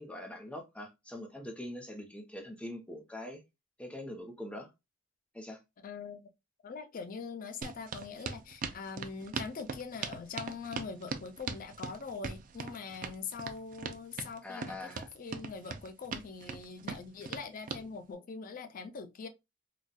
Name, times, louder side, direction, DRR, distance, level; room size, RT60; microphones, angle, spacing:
voice 1, 0.0-3.4 3.8-4.7 5.3-5.6 14.4-15.1, left 1 dB, 5° left, 0.8 m, -43 dB
voice 2, 5.8-6.3 6.6-19.3, left 5 dB, 45° left, 0.4 m, -43 dB
sound 1, 7.6-17.8, right 5 dB, 40° right, 0.4 m, -40 dB
4.0 x 2.3 x 2.2 m
head